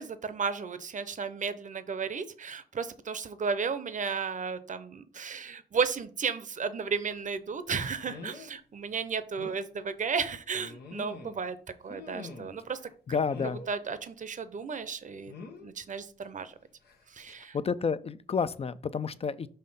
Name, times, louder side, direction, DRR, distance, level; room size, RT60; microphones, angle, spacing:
voice 1, 0.0-11.6 11.8-12.8 13.4-15.3 15.6-16.5 17.1-17.6, right 5 dB, 50° right, 12 dB, 0.7 m, -34 dB
sound 1, 7.1-7.3 8.1-8.5 8.9-9.0 9.4-9.6 10.5-11.5 11.9-12.6 13.2-13.7 15.3-15.7 16.8-17.0 17.4-17.5, left 4 dB, 85° left, 0.9 m, -45 dB
voice 2, 13.1-13.6 17.5-19.5, left 5 dB, 40° left, 15 dB, 0.5 m, -30 dB
5.7 x 3.2 x 5.5 m, 0.43 s
cardioid pair, 60°, 16 cm